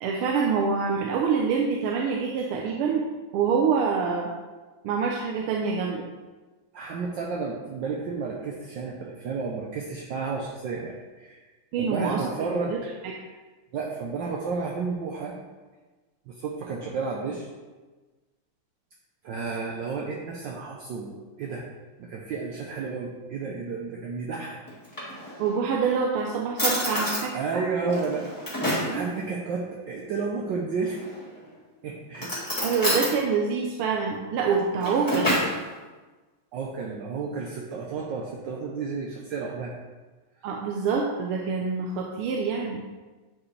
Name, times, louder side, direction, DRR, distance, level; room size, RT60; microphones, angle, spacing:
voice 1, 0.0-3.0 3.3-4.3 4.8-6.1 11.7-12.2 12.7-12.8 25.4-27.6 28.8-29.0 32.6-35.4 40.4-42.8, right 5 dB, 90° right, -1 dB, 1.6 m, -26 dB
voice 2, 6.7-11.5 11.8-12.8 13.7-15.4 16.3-17.5 19.2-21.7 22.0-24.6 25.1-25.2 27.3-28.3 28.8-31.1 31.8-32.3 32.6-32.8 36.5-39.7, right 4 dB, 65° right, -2 dB, 1.3 m, -32 dB
Drawer open or close, 24.7-25.6 26.2-26.3 26.6-27.3 27.9-29.0 30.8-31.4 32.1-33.1 34.5-35.6, equal, 10° left, 1.7 m, -28 dB
9.8 x 4.7 x 3.2 m, 1.3 s
omnidirectional pair, 2.4 m